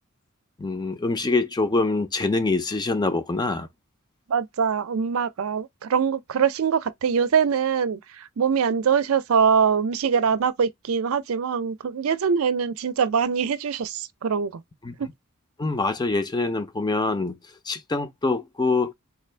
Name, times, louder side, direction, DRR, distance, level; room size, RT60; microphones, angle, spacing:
voice 1, 0.6-3.7 14.8-15.1 15.6-17.4 17.7-18.9, left 3 dB, 20° left, 0.5 m, -25 dB
voice 2, 4.3-14.6 15.0-15.1, right 6 dB, 75° right, 0.5 m, -23 dB
3.8 x 2.5 x 3.2 m
head